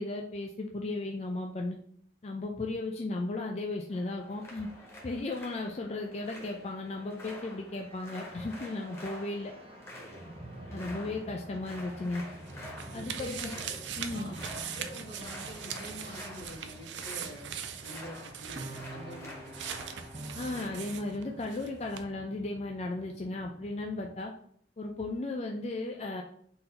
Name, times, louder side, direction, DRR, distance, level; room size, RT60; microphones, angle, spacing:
voice 1, 0.0-1.8 2.2-4.7 5.0-9.5 10.7-12.2 12.9-13.5 14.0-14.3 20.3-24.3 24.8-26.2, left 2 dB, 35° left, 1 dB, 0.4 m, -35 dB
sound 1, 3.9-21.0, left 1 dB, 15° left, 1.0 m, -48 dB
sound 2, 7.7-24.2, right 1 dB, 35° right, 0.6 m, -48 dB
sound 3, 12.0-21.7 21.9-22.0, right 8 dB, 85° right, 0.4 m, -41 dB
voice 2, 12.9-13.6 14.1-14.4 14.7-17.4 17.8-19.5, equal, 80° left, -3 dB, 1.7 m, -46 dB
3.9 x 2.6 x 4.2 m, 0.64 s
head